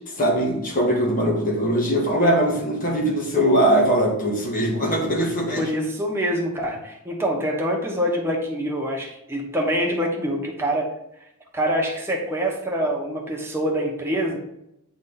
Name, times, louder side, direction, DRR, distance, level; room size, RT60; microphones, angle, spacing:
voice 1, 0.2-5.6, right 1 dB, 40° left, -1 dB, 1.6 m, -21 dB
voice 2, 5.6-10.9 11.5-14.4, equal, 10° right, -1 dB, 1.1 m, -25 dB
7.9 x 3.4 x 4.0 m, 0.82 s
head